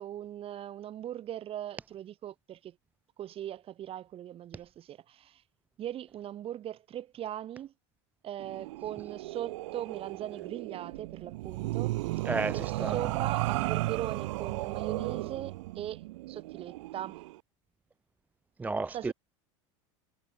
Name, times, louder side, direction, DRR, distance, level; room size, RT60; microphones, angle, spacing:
voice 1, 0.0-2.7 3.2-5.4 5.8-7.7 8.2-12.0 12.5-17.2 18.9-19.1, right 11 dB, 35° right, 1.3 m, -40 dB
sound 1, 8.4-17.3, right 19 dB, 75° right, 0.6 m, -35 dB
voice 2, 12.3-13.0 18.6-19.1, right 3 dB, 10° right, 0.3 m, -32 dB
hypercardioid pair, 105°, 16 cm